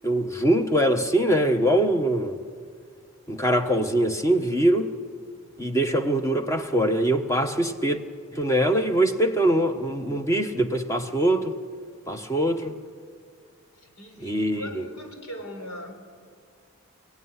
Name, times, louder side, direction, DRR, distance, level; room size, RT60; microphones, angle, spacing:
voice 1, 0.0-2.4 3.3-4.9 5.6-8.0 8.3-11.5 12.1-12.7 14.2-14.8, right 1 dB, 15° left, 1.1 m, -23 dB
voice 2, 13.7-15.9, equal, 80° left, 4.4 m, -40 dB
29.0 x 17.0 x 9.7 m
head